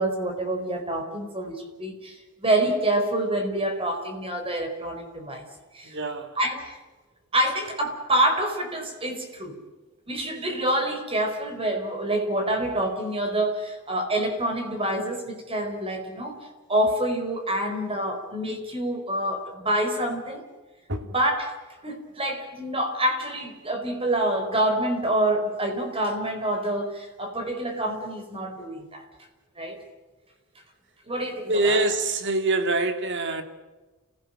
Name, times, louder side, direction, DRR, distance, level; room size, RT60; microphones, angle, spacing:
voice 1, 0.0-5.4 5.7-6.0 6.4-6.8 7.3-9.6 10.1-20.4 21.1-21.5 21.8-29.0 29.5-29.8 31.1-31.8, right 1 dB, 25° right, 4.6 m, -27 dB
voice 2, 5.8-6.4 20.9-21.1 31.5-33.4, right 2 dB, 55° right, 2.4 m, -25 dB
29.5 x 16.5 x 8.8 m
head